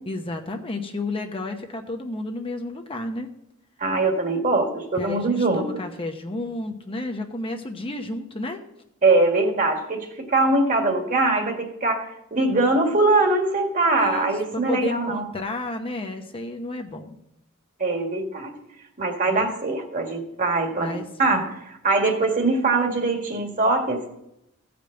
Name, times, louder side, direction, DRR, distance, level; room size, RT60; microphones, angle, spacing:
voice 1, 0.1-3.3 5.0-8.6 14.0-17.2 19.3-19.5 20.8-21.0, left 2 dB, 25° left, 4 dB, 0.8 m, -31 dB
voice 2, 3.8-5.7 9.0-15.2 17.8-18.5 19.0-24.1, right 2 dB, 40° right, 3 dB, 1.8 m, -22 dB
15.0 x 5.2 x 7.8 m, 0.82 s
head